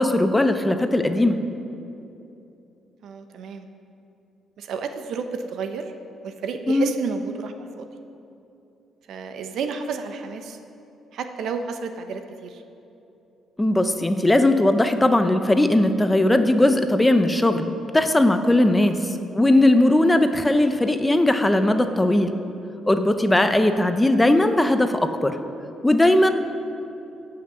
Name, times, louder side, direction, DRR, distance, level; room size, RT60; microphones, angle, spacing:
voice 1, 0.0-1.4 6.7-6.9 13.6-18.9 19.3-22.3 22.8-25.4 25.8-26.3, left 1 dB, 10° left, 8 dB, 0.7 m, -19 dB
voice 2, 3.0-3.7 4.6-5.9 6.2-7.9 9.1-10.6 11.1-12.6 18.9-19.2, right 5 dB, 75° right, 7 dB, 0.8 m, -31 dB
17.5 x 5.9 x 6.2 m, 2.8 s
cardioid pair, 90°, 0 cm